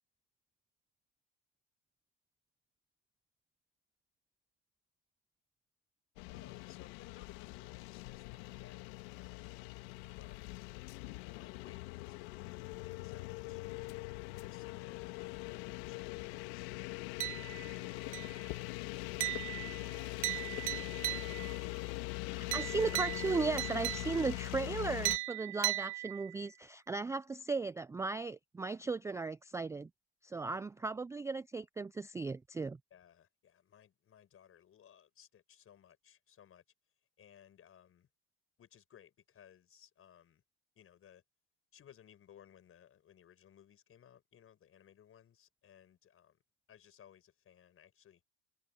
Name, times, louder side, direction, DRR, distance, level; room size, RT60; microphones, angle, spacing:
sound 1, 6.2-25.2, left 23 dB, 75° left, 1.9 m, -42 dB
voice 1, 6.3-9.6 10.1-10.4 11.3-13.9 14.4-21.3 32.9-36.6 37.2-38.1 38.6-40.4 40.7-41.2 41.7-46.4 46.7-48.2, left 9 dB, 40° left, 6.2 m, -61 dB
sound 2, 17.2-17.8 18.1-18.5 19.2-21.6 22.5-24.4 25.0-26.5, right 20 dB, 90° right, 1.2 m, -38 dB
voice 2, 22.3-29.9 30.2-32.8, right 4 dB, 10° right, 0.4 m, -36 dB
supercardioid pair, 100°, 34 cm